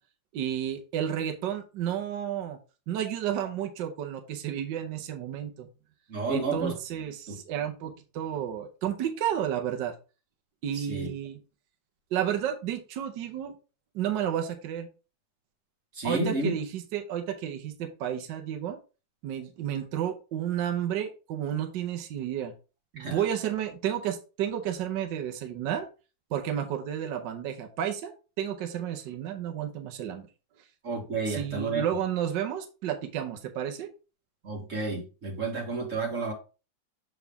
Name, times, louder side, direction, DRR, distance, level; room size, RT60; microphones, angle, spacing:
voice 1, 0.3-2.6 2.9-5.7 6.3-9.9 10.6-11.4 12.1-13.5 13.9-14.9 16.0-18.8 19.2-22.5 22.9-25.9 26.3-28.1 28.4-30.3 31.3-33.9, right 10 dB, 70° right, 5 dB, 1.4 m, -31 dB
voice 2, 6.1-6.7 7.3-7.4 10.7-11.1 16.0-16.5 23.0-23.2 30.8-31.8 34.4-36.3, right 3 dB, 40° right, 1 dB, 1.8 m, -31 dB
7.0 x 4.1 x 3.4 m, 0.32 s
omnidirectional pair, 2.1 m